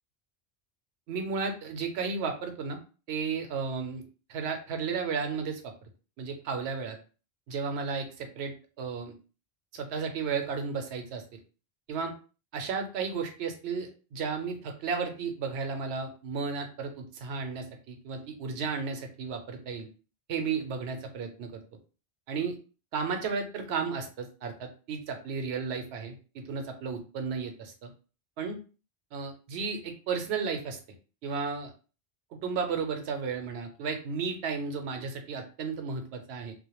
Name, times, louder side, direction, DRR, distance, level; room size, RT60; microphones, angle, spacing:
voice 1, 1.1-2.8 3.1-4.0 4.3-5.7 6.2-7.0 7.5-9.1 9.7-11.4 11.9-12.1 12.5-19.9 20.3-21.6 22.3-22.6 22.9-27.9 28.4-28.6 29.1-30.8 31.2-31.7 32.4-36.5, right 5 dB, 80° right, 5 dB, 0.9 m, -33 dB
2.2 x 2.1 x 2.9 m, 0.35 s
omnidirectional pair, 1.1 m